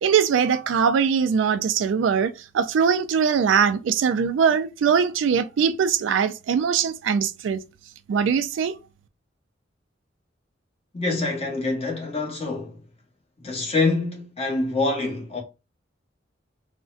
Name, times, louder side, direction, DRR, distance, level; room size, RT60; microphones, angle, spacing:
voice 1, 0.0-7.6 8.1-8.7, right 7 dB, 85° right, 0.3 m, -21 dB
voice 2, 10.9-12.8 13.4-15.4, left 3 dB, 35° left, 1.0 m, -25 dB
3.7 x 2.1 x 2.4 m
head